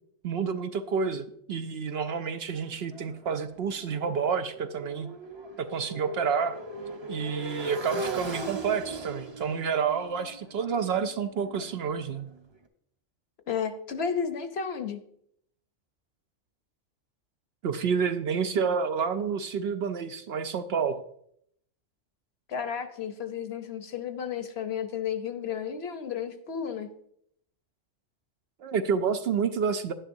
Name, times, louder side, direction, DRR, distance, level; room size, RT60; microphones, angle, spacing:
voice 1, 0.2-5.1 5.6-6.6 7.1-12.3 17.6-21.0 28.6-29.9, right 6 dB, 65° right, 9 dB, 0.7 m, -29 dB
Motorcycle, 2.5-12.4, right 2 dB, 25° right, 0.7 m, -39 dB
voice 2, 13.5-15.0 22.5-26.9, left 7 dB, 60° left, 8 dB, 1.0 m, -32 dB
11.0 x 9.9 x 2.6 m, 0.70 s
omnidirectional pair, 1.3 m